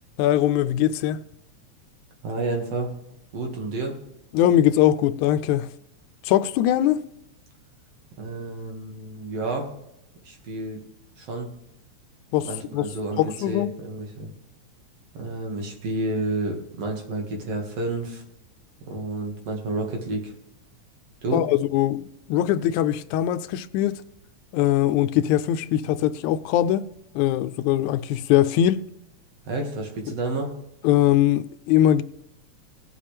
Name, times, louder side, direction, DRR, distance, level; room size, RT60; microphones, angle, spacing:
voice 1, 0.2-1.2 4.3-5.7 6.2-7.0 12.3-12.9 13.2-13.8 21.3-24.0 24.5-26.9 27.2-28.8 30.8-32.0, left 12 dB, 90° left, 2.0 m, -21 dB
voice 2, 2.2-2.9 3.3-4.0 8.2-9.7 10.2-10.8 11.2-11.5 12.4-13.2 13.5-14.3 15.1-18.2 18.9-20.3 21.2-21.5 29.5-30.5, right 2 dB, 60° right, 2.9 m, -30 dB
18.5 x 7.4 x 3.3 m
omnidirectional pair, 3.3 m